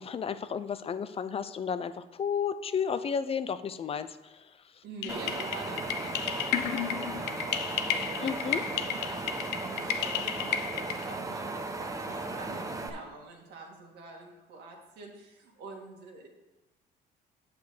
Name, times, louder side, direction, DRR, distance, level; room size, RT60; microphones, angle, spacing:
voice 1, 0.0-4.3 8.2-8.6, left 7 dB, 35° left, 12 dB, 0.5 m, -32 dB
voice 2, 4.8-16.3, right 3 dB, 75° right, 0 dB, 2.1 m, -47 dB
sound 1, 5.0-11.2, left 9 dB, 80° left, 0.7 m, -33 dB
Wind, 5.1-12.9, right 3 dB, 20° right, 0.8 m, -36 dB
8.0 x 5.2 x 6.6 m, 1.1 s
cardioid pair, 110°, 17 cm